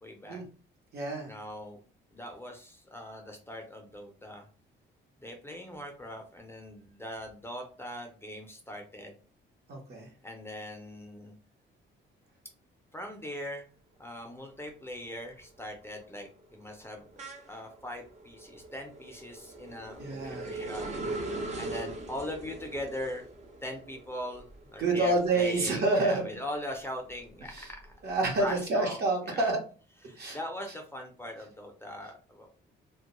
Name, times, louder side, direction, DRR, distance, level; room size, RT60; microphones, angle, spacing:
voice 1, 0.0-0.4 1.3-1.8 2.1-4.5 5.2-9.2 10.2-11.4 12.9-13.7 14.0-20.9 21.6-23.3 23.6-27.9 28.4-29.0 29.2-29.6 29.9-32.7, left 1 dB, 10° left, 2 dB, 0.5 m, -41 dB
voice 2, 0.9-1.3 9.7-10.1 20.0-20.5 24.8-26.2 27.5-27.7 28.0-29.6 30.2-30.4, right 2 dB, 55° right, 1 dB, 0.9 m, -28 dB
sound 1, 14.3-14.7 15.1-26.3 26.7-28.4, right 2 dB, 35° right, 0.6 m, -42 dB
2.2 x 2.1 x 2.9 m, 0.38 s
cardioid pair, 90°, 20 cm